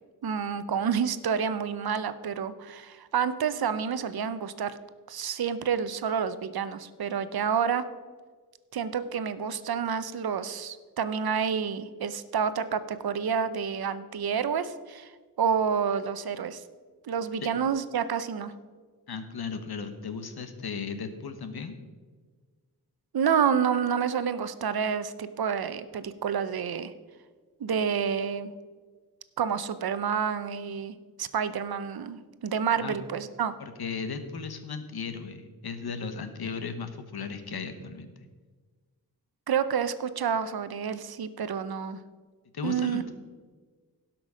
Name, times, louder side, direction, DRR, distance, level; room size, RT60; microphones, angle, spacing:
voice 1, 0.2-4.8 5.1-7.8 8.7-15.1 15.4-16.6 17.1-18.5 23.1-26.9 27.6-28.5 29.4-33.5 39.5-42.0 42.6-43.1, right 7 dB, 75° right, 13 dB, 0.7 m, -29 dB
voice 2, 19.1-21.8 32.8-32.9 33.6-38.3 42.5-43.1, left 5 dB, 90° left, 9 dB, 1.2 m, -36 dB
16.5 x 6.0 x 5.0 m, 1.5 s
wide cardioid pair, 110°, 37 cm